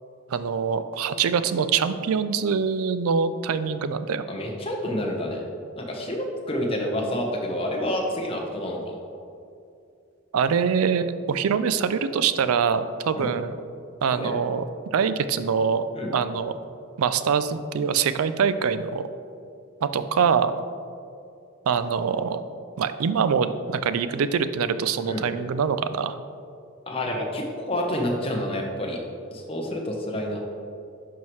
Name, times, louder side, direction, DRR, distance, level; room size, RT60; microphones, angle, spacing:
voice 1, 0.3-4.3 10.3-13.6 14.0-14.6 14.9-15.8 16.1-16.5 17.0-19.0 19.8-20.5 21.7-22.4 22.8-26.2, right 6 dB, 90° right, 12 dB, 0.4 m, -24 dB
voice 2, 4.3-5.4 5.7-9.0 13.1-13.3 14.1-14.3 15.9-16.1 25.1-25.3 26.9-29.0 29.3-30.4, left 1 dB, 25° left, 0 dB, 0.9 m, -28 dB
11.0 x 4.6 x 3.1 m, 2.5 s
head